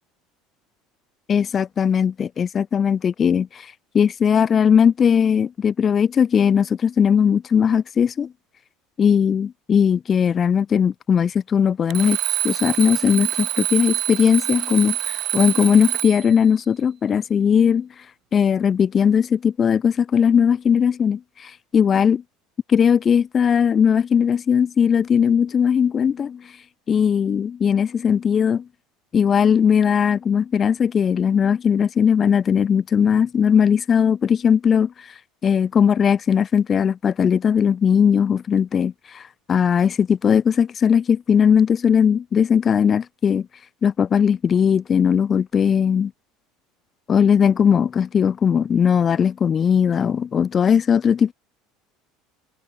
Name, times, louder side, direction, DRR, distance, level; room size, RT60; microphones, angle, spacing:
voice 1, 1.3-8.3 9.0-12.2 12.4-17.9 18.3-22.2 22.7-26.5 26.9-28.6 29.1-35.1 35.4-43.5 43.8-46.1 47.1-51.3, left 7 dB, 35° left, 0.4 m, -18 dB
Alarm, 11.9-16.3, right 13 dB, 55° right, 1.7 m, -26 dB
supercardioid pair, 90°, 0 cm